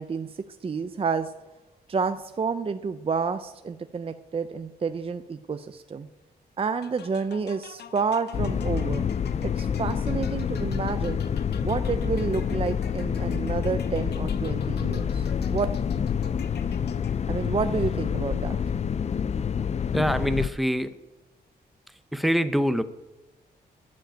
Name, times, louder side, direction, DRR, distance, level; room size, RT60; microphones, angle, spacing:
voice 1, 0.0-1.3 1.9-6.1 6.6-9.1 9.4-11.2 11.6-15.7 17.3-18.6, right 5 dB, 35° right, 9 dB, 0.6 m, -29 dB
sound 1, 6.8-17.5, left 8 dB, 70° left, 0.7 m, -47 dB
sound 2, 8.3-20.5, left 7 dB, 40° left, 0.5 m, -27 dB
voice 2, 19.9-20.9 21.9-22.8, equal, ahead, 11 dB, 0.8 m, -25 dB
11.5 x 7.5 x 9.0 m, 1.0 s
wide cardioid pair, 125°, 17 cm